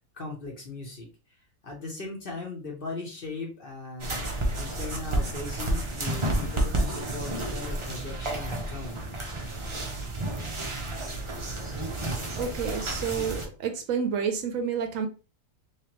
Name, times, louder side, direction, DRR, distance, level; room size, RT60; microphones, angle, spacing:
voice 1, 0.1-1.1 1.6-4.2 4.5-9.0, left 3 dB, 45° left, 1.1 m, -38 dB
sound 1, 4.0-13.5, right 1 dB, 35° right, 0.5 m, -31 dB
voice 2, 12.3-15.1, right 6 dB, 70° right, 1.0 m, -29 dB
3.3 x 3.3 x 2.9 m
omnidirectional pair, 1.5 m